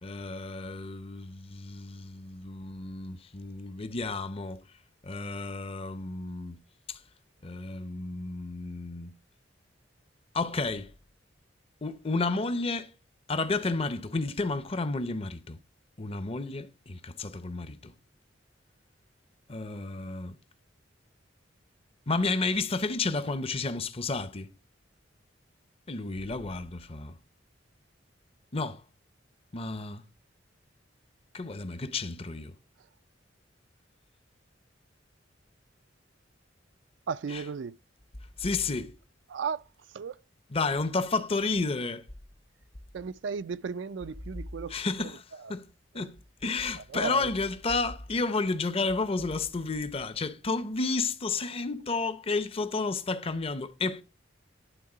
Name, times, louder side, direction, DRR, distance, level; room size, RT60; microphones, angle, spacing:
voice 1, 0.0-4.6 5.0-6.6 6.9-7.0 7.4-9.1 10.3-10.9 11.8-12.9 13.3-15.6 16.0-17.9 19.5-20.4 22.1-24.5 25.9-27.1 28.5-28.8 29.5-30.0 31.3-32.5 37.3-37.4 38.4-38.9 40.5-42.1 44.7-45.2 45.5-45.7 45.9-46.2 46.4-54.0, left 3 dB, 30° left, 0.6 m, -31 dB
voice 2, 37.1-37.7 39.3-39.6 39.9-40.2 42.9-44.8 45.4-45.5 46.0-46.1 46.8-47.3, right 5 dB, 70° right, 0.4 m, -35 dB
11.0 x 3.8 x 4.9 m
head